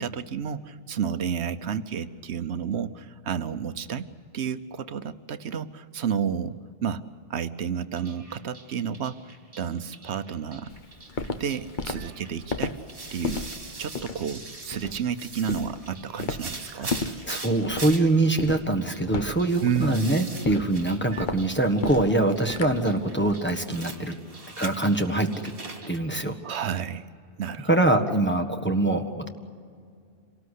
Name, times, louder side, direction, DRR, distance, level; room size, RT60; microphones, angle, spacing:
voice 1, 0.0-4.1 4.3-6.6 6.8-7.0 7.3-9.2 9.6-10.7 11.4-12.8 13.1-13.5 13.8-16.9 19.6-20.1 26.4-27.0 27.4-27.7, right 7 dB, 80° right, 11 dB, 1.1 m, -31 dB
sound 1, 8.0-26.0, right 3 dB, 60° right, 2.3 m, -43 dB
Walk footsteps, 10.7-23.5, left 3 dB, 50° left, 1.1 m, -34 dB
voice 2, 17.2-24.1 24.6-25.3 25.9-26.3 27.7-29.3, right 2 dB, 10° left, 4 dB, 1.4 m, -24 dB
27.0 x 18.5 x 8.3 m, 2.2 s
omnidirectional pair, 1.1 m